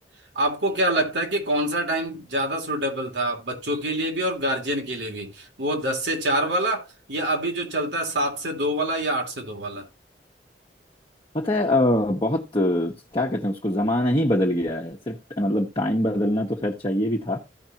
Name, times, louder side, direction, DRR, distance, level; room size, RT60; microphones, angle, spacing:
voice 1, 0.3-9.8, right 1 dB, 80° right, 3.2 m, -26 dB
voice 2, 11.3-17.4, left 1 dB, 25° left, 1.3 m, -23 dB
15.5 x 5.3 x 3.0 m
head